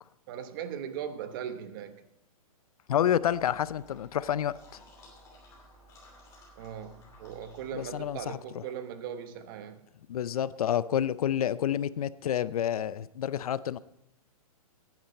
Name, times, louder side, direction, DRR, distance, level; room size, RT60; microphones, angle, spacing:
voice 1, 0.3-2.1 6.6-9.8, right 8 dB, 35° right, 0.9 m, -39 dB
voice 2, 2.9-4.6 7.7-8.4 10.1-13.8, left 10 dB, 75° left, 0.5 m, -29 dB
sound 1, 3.2-8.3, equal, 15° left, 2.9 m, -55 dB
14.0 x 9.3 x 4.2 m
hypercardioid pair, 155°, 19 cm